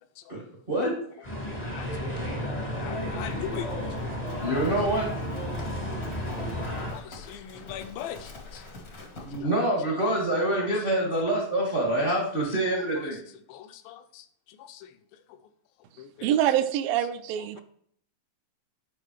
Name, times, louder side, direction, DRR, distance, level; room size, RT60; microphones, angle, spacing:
voice 1, 0.3-1.3 2.2-2.4 4.4-5.1 9.1-13.2, right 1 dB, 50° right, -3 dB, 0.6 m, -26 dB
sound 1, 1.2-6.9, equal, 50° left, 0.4 m, -32 dB
voice 2, 1.5-2.4 2.8-3.7 4.0-4.1 6.7-8.6 13.5-14.9 16.0-16.3, left 10 dB, 80° left, 9 dB, 2.3 m, -40 dB
Livestock farm animals working animals, 2.9-9.4, left 3 dB, 65° left, 0.9 m, -46 dB
voice 3, 16.2-17.6, right 11 dB, 80° right, 9 dB, 2.2 m, -25 dB
10.5 x 4.9 x 3.2 m, 0.63 s
omnidirectional pair, 4.1 m